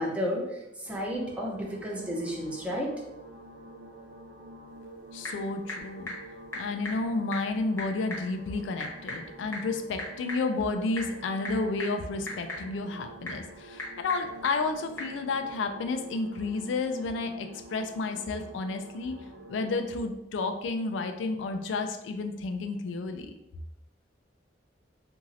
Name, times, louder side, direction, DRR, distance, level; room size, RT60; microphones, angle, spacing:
voice 1, 0.0-2.9, equal, 5° right, -2 dB, 0.5 m, -32 dB
sound 1, 0.8-20.1, right 1 dB, 80° right, 0.5 m, -47 dB
Typing / Telephone, 4.7-15.2, left 2 dB, 15° left, 0.9 m, -41 dB
voice 2, 5.1-6.1 6.5-19.2 19.5-23.3, left 3 dB, 90° left, 7 dB, 0.3 m, -31 dB
2.9 x 2.7 x 2.5 m, 0.89 s
head